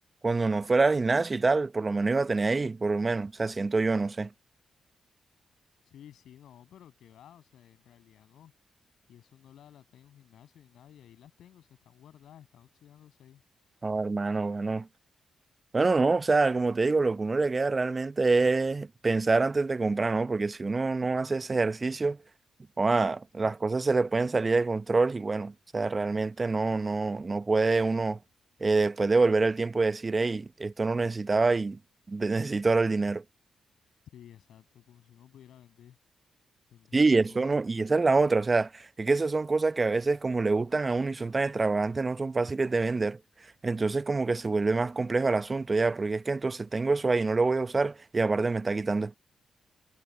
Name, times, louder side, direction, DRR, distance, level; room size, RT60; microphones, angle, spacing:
voice 1, 0.2-4.3 13.8-14.9 15.7-22.2 22.8-28.2 28.6-31.8 32.1-33.2 36.9-43.2 43.6-49.2, right 3 dB, 35° right, 0.8 m, -26 dB
voice 2, 5.8-8.5 9.1-13.4 34.1-36.0 36.7-37.6, left 10 dB, 75° left, 7.4 m, -54 dB
hypercardioid pair, 40°, 0 cm